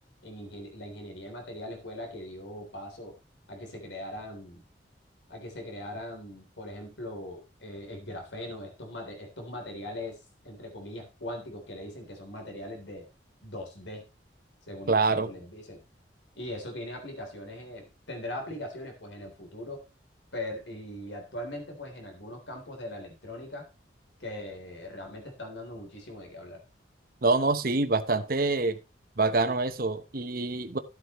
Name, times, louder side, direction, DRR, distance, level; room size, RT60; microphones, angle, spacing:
voice 1, 0.2-3.1 3.5-4.6 5.3-13.1 13.4-14.1 14.7-15.8 16.4-19.9 20.3-23.7 24.2-26.6, left 1 dB, 80° left, 3.5 m, -40 dB
voice 2, 14.9-15.3 27.2-28.8 29.2-30.8, right 3 dB, 50° right, 1.0 m, -26 dB
14.5 x 8.2 x 3.1 m
head